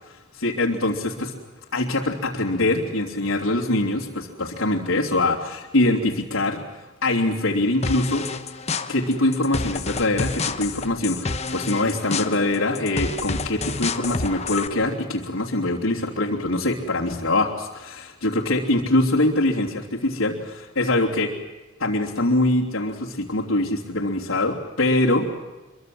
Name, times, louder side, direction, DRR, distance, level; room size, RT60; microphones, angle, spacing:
voice 1, 0.4-1.3 1.7-6.6 7.0-8.2 8.9-21.3 21.8-25.3, left 2 dB, 90° left, -4 dB, 3.2 m, -23 dB
sound 1, 7.8-14.7, left 4 dB, 30° left, 1.1 m, -29 dB
26.0 x 23.5 x 7.9 m, 1.2 s
head